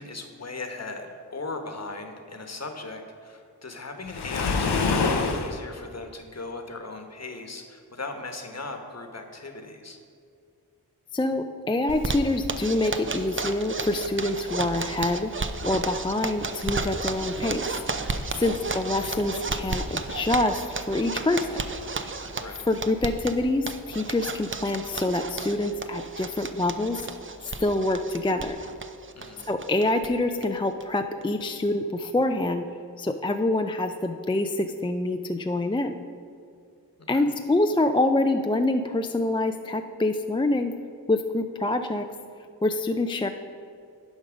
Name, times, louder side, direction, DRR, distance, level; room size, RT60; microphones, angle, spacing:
voice 1, 0.0-10.0 18.2-18.4 22.4-22.7 29.1-29.5 37.1-37.3, left 3 dB, 40° left, 5 dB, 1.2 m, -38 dB
Waves surf, 4.1-5.6, left 4 dB, 90° left, 0.8 m, -25 dB
voice 2, 11.1-15.3 15.6-17.8 18.4-20.6 20.9-21.6 22.7-27.1 27.6-28.6 29.5-32.7 33.0-36.0 37.1-40.7 41.1-42.1 42.6-43.3, left 2 dB, 15° left, 6 dB, 0.4 m, -26 dB
Zipper (clothing), 11.9-30.1 30.4-30.5 30.8-30.9 31.2-31.7, right 3 dB, 30° right, 0.6 m, -33 dB
10.5 x 5.3 x 5.1 m, 2.4 s
cardioid pair, 45°, 38 cm